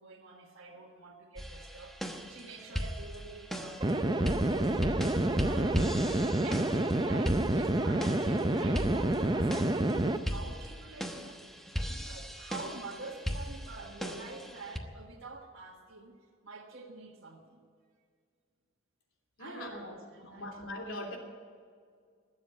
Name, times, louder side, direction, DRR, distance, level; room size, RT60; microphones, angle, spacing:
voice 1, 0.0-6.0 6.4-11.4 11.9-17.6 19.4-20.6, right 3 dB, 65° right, -3 dB, 1.6 m, -47 dB
sound 1, 1.4-14.8, equal, ahead, 1.0 m, -38 dB
sound 2, 3.8-10.2, right 1 dB, 20° right, 0.6 m, -28 dB
voice 2, 19.4-21.2, left 1 dB, 70° left, 1 dB, 3.1 m, -42 dB
20.5 x 7.4 x 9.4 m, 2.1 s
head